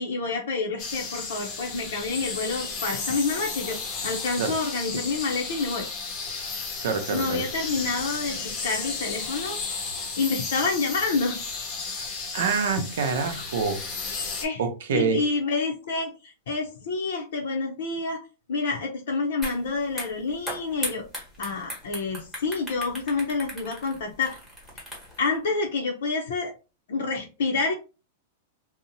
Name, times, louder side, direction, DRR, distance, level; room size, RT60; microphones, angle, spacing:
voice 1, 0.0-3.8 4.0-5.9 7.1-9.6 10.2-11.4 14.4-14.6 14.9-21.1 21.4-24.4 25.2-26.5 26.9-27.7, left 4 dB, 80° left, 0.5 m, -28 dB
sound 1, 0.8-14.4, left 4 dB, 25° left, 0.6 m, -33 dB
voice 2, 6.8-7.4 11.9-13.8 14.6-15.2, right 5 dB, 80° right, 0.6 m, -26 dB
sound 2, 19.4-19.6 19.9-25.3, equal, 5° right, 0.9 m, -37 dB
2.8 x 2.0 x 2.6 m
supercardioid pair, 160°, 0 cm